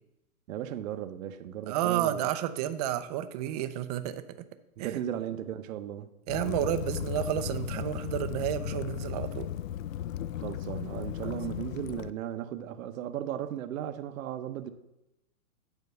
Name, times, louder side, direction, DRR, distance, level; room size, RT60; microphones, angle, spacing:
voice 1, 0.5-2.3 4.8-6.1 10.4-14.7, right 10 dB, 65° right, 0.8 m, -36 dB
voice 2, 1.7-4.4 4.8-5.0 6.3-9.5 11.2-11.4, right 12 dB, 30° right, 0.5 m, -31 dB
Waves surf / Splash splatter / Trickle dribble, 6.3-12.1, left 10 dB, 65° left, 0.5 m, -36 dB
9.4 x 4.5 x 6.7 m
hypercardioid pair, 135°, 43 cm